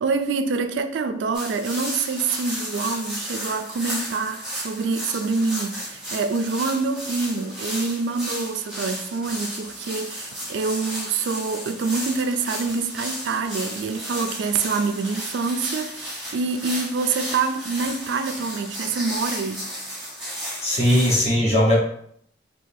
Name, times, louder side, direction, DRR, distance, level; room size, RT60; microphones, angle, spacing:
voice 1, 0.0-19.6, right 4 dB, 85° right, 0.3 m, -26 dB
sound 1, 1.3-21.2, equal, 5° right, 1.1 m, -33 dB
voice 2, 20.6-21.8, left 1 dB, 35° left, 1.0 m, -19 dB
3.8 x 2.8 x 2.6 m
head